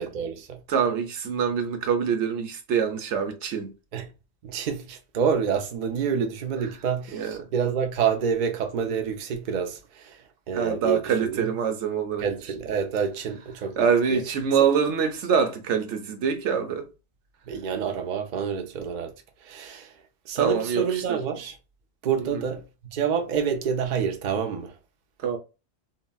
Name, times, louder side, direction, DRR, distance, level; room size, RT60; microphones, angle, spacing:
voice 1, 0.0-0.6 3.9-4.1 4.4-11.5 12.2-14.2 17.5-19.1 19.4-19.9 20.3-21.6 22.0-22.6 22.9-24.8, right 7 dB, 50° right, 0.6 m, -28 dB
voice 2, 0.7-3.7 7.1-7.5 10.5-12.3 13.8-16.9 20.4-21.2 25.2-25.4, right 7 dB, 80° right, 1.0 m, -25 dB
3.8 x 2.0 x 2.2 m
omnidirectional pair, 1.2 m